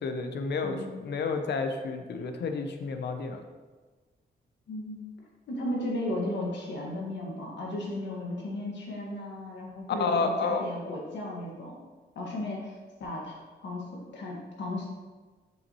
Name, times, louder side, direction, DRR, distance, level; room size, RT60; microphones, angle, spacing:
voice 1, 0.0-3.4 10.0-10.7, left 4 dB, 70° left, 6 dB, 0.7 m, -30 dB
voice 2, 0.6-1.0 4.7-5.0 5.5-11.8 12.1-12.7 13.0-13.4 13.6-14.9, left 1 dB, 90° left, -2 dB, 1.7 m, -35 dB
7.0 x 5.7 x 3.0 m, 1.3 s
cardioid pair, 95°, 18 cm